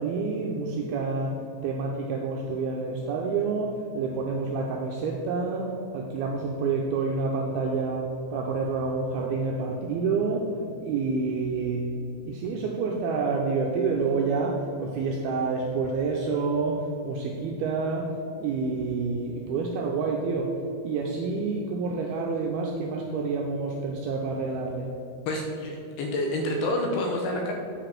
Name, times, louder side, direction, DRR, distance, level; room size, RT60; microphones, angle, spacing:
voice 1, 0.0-10.5 10.8-12.0 12.2-20.6 20.8-24.9, right 4 dB, 85° right, 0 dB, 2.2 m, -28 dB
voice 2, 25.3-27.5, left 1 dB, 75° left, 1 dB, 2.5 m, -28 dB
8.6 x 5.0 x 5.9 m, 2.8 s
omnidirectional pair, 5.1 m